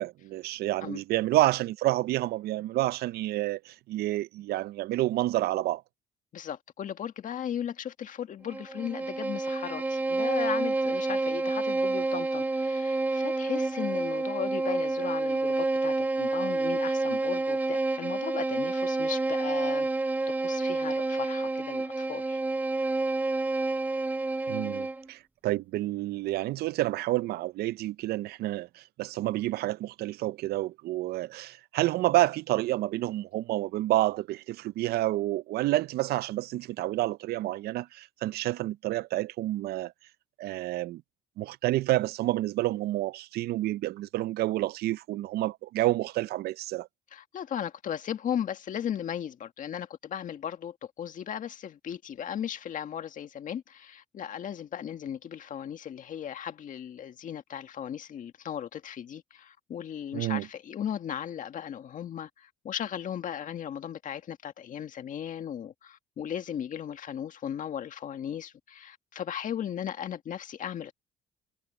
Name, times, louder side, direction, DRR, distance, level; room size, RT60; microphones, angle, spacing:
voice 1, 0.0-5.8 24.5-28.7 29.0-39.9 40.4-41.0 41.4-46.9 60.1-60.5, right 16 dB, 70° right, 0.5 m, -29 dB
voice 2, 6.3-19.9 20.4-22.4 47.1-70.9, left 9 dB, 50° left, 1.9 m, -36 dB
Bowed string instrument, 8.5-25.1, right 2 dB, 10° right, 0.4 m, -29 dB
cardioid pair, 110°, 17 cm